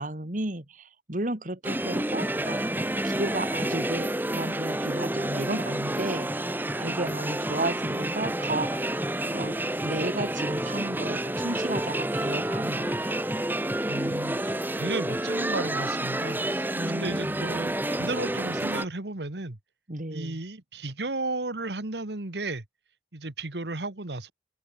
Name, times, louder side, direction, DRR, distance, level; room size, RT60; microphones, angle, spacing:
voice 1, 0.0-2.6 3.0-13.2 16.7-17.5 19.9-20.4, right 2 dB, 45° right, 2.2 m, -33 dB
sound 1, 1.6-18.8, right 1 dB, 10° right, 1.8 m, -29 dB
voice 2, 13.9-19.6 20.1-22.6 23.1-24.3, right 2 dB, 75° right, 1.8 m, -34 dB
open air
head